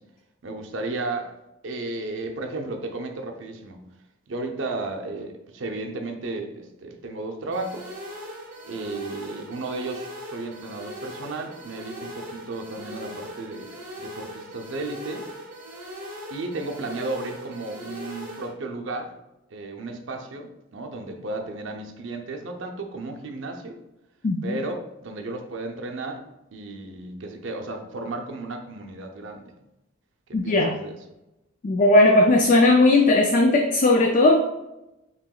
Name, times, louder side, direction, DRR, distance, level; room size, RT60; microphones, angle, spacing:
voice 1, 0.4-1.4 1.6-3.9 4.3-7.9 8.6-15.3 16.3-19.1 19.5-23.8 24.4-26.2 26.5-29.4 30.4-31.0, right 2 dB, 60° right, 3 dB, 0.6 m, -34 dB
sound 1, 7.5-18.5, equal, 40° right, 0.9 m, -40 dB
voice 2, 24.2-24.6 30.3-30.7 31.6-34.4, left 2 dB, 40° left, 3 dB, 0.3 m, -17 dB
5.6 x 3.0 x 2.3 m, 0.93 s
head